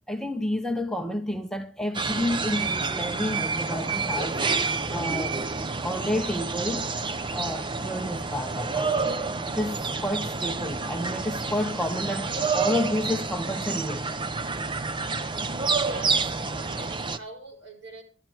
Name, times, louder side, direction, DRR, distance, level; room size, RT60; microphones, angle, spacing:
voice 1, 0.1-4.4 4.9-5.5 5.8-6.9 7.3-9.2 9.5-14.1, left 1 dB, 5° left, 0.9 m, -30 dB
sound 1, 1.9-17.2, right 4 dB, 25° right, 0.7 m, -29 dB
voice 2, 15.8-18.0, right 2 dB, 60° right, 4.6 m, -44 dB
12.5 x 12.0 x 4.6 m
head